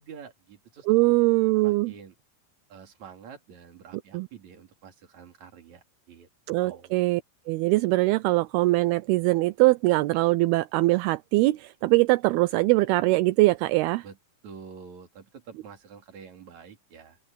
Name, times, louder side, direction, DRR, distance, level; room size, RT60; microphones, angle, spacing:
voice 1, 0.0-1.2 1.6-2.1 2.7-6.3 6.6-7.0 14.0-14.2 14.4-17.2, right 6 dB, 45° right, 3.8 m, -47 dB
voice 2, 0.9-1.9 4.1-4.3 6.5-7.2 7.5-14.0, right 21 dB, 80° right, 2.4 m, -22 dB
open air
omnidirectional pair, 4.9 m